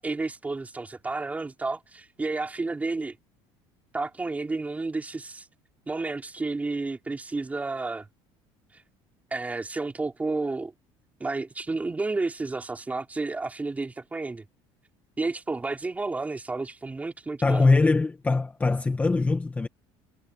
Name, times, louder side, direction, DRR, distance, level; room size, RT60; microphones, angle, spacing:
voice 1, 0.0-3.2 3.9-5.5 5.9-8.1 8.7-8.8 9.3-10.7 11.2-14.4 15.2-17.7, right 3 dB, 15° right, 4.2 m, -31 dB
voice 2, 17.4-19.7, left 3 dB, 15° left, 1.3 m, -22 dB
cardioid pair, 140°, 11 cm